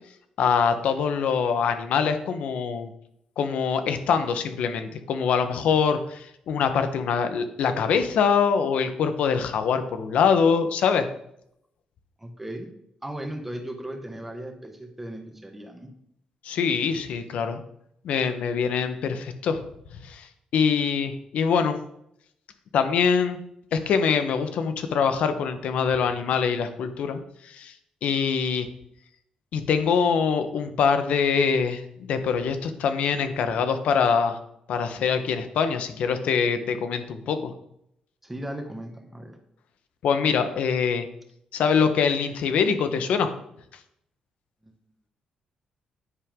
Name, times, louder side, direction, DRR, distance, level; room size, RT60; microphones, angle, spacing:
voice 1, 0.4-2.9 3.4-11.1 16.4-17.6 18.0-19.6 20.0-20.3 20.5-21.8 22.7-23.4 23.7-27.7 28.0-28.7 29.5-34.4 34.7-37.5 40.0-41.1 41.5-43.3, left 6 dB, 75° left, 9 dB, 1.2 m, -24 dB
voice 2, 12.2-12.7 13.0-15.9 38.2-39.4 44.6-44.8, right 1 dB, 10° right, 4 dB, 1.6 m, -37 dB
10.0 x 10.0 x 3.8 m, 0.74 s
cardioid pair, 135°, 2 cm